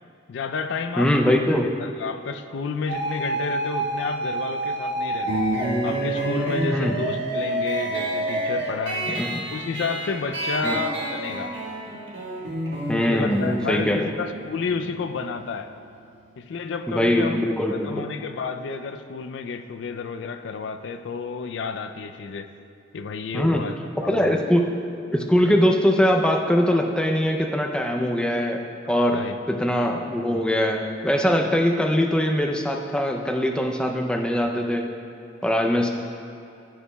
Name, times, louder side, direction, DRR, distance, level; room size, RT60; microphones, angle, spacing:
voice 1, 0.3-11.5 12.9-15.7 16.4-17.4 17.7-22.5 22.9-24.4 29.1-29.4, left 4 dB, 70° left, 9 dB, 0.4 m, -31 dB
voice 2, 1.0-1.7 6.7-6.9 9.2-9.4 10.6-10.8 12.9-14.2 16.9-18.1 23.3-23.6 24.1-24.7 24.9-28.6 28.9-29.2 29.5-34.9 35.4-35.9, equal, 5° left, 2 dB, 0.4 m, -22 dB
sound 1, 2.9-8.7, right 1 dB, 55° right, 0.7 m, -28 dB
sound 2, 5.3-16.4, right 1 dB, 75° right, 1.3 m, -31 dB
14.5 x 4.9 x 2.2 m, 2.7 s
head